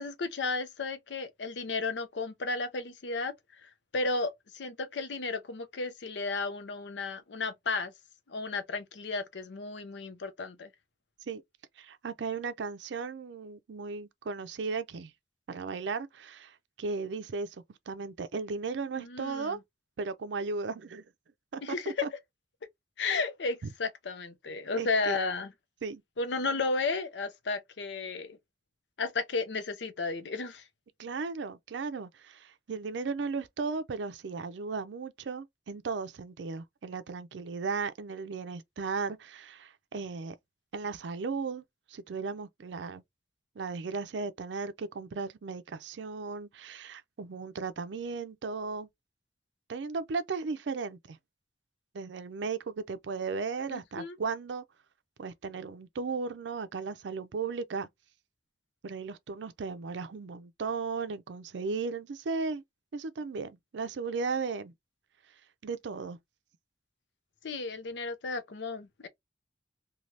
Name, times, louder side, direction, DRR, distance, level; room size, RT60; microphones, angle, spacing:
voice 1, 0.0-3.3 3.6-7.9 8.3-10.7 19.0-19.6 21.6-22.1 23.0-25.5 26.2-28.4 29.0-30.6 53.7-54.2 67.4-69.1, left 3 dB, 80° left, 0.6 m, -33 dB
voice 2, 11.8-15.1 15.5-19.6 20.0-21.0 21.5-21.6 22.0-22.1 24.8-25.2 25.8-26.0 31.0-40.3 40.7-43.0 43.6-48.9 49.7-51.2 51.9-54.6 55.2-57.9 58.8-62.6 62.9-64.7 65.6-66.2, right 4 dB, 85° right, 0.4 m, -36 dB
3.2 x 2.3 x 2.6 m
head